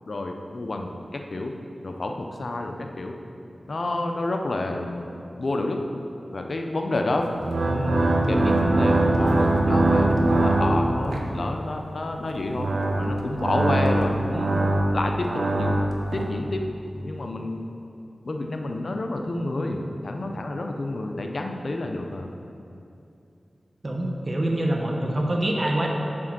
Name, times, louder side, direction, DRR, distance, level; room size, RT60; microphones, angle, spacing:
voice 1, 0.1-1.6 1.8-3.1 3.7-5.1 5.4-5.8 6.3-7.4 7.6-12.7 13.0-14.6 14.9-15.8 16.1-16.6 16.9-17.7 18.2-22.3, left 2 dB, 65° left, 3 dB, 0.6 m, -29 dB
sound 1, 7.3-11.4 12.3-16.3, right 2 dB, 80° right, 0.7 m, -22 dB
voice 2, 23.8-25.9, right 1 dB, 40° right, 0 dB, 0.9 m, -25 dB
6.1 x 4.4 x 6.1 m, 2.7 s
cardioid pair, 40°, 0 cm